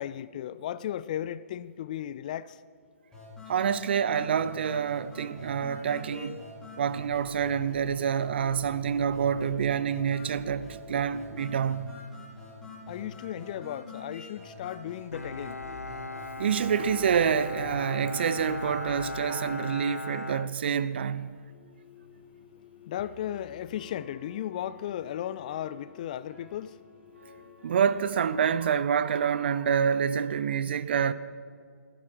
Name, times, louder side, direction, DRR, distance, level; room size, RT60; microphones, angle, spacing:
voice 1, 0.0-2.6 12.9-15.6 21.5-27.8, left 11 dB, 30° left, 0.4 m, -36 dB
sound 1, 3.1-19.1, left 2 dB, 10° left, 4.6 m, -45 dB
voice 2, 3.5-6.4 6.8-11.9 16.4-21.4 27.6-31.1, right 7 dB, 45° right, 0.6 m, -27 dB
Bowed string instrument, 15.1-21.3, left 3 dB, 85° left, 0.6 m, -38 dB
Piano, 22.9-29.8, right 1 dB, 65° right, 5.0 m, -54 dB
20.0 x 14.0 x 4.7 m
figure-of-eight pair, 130°, 8 cm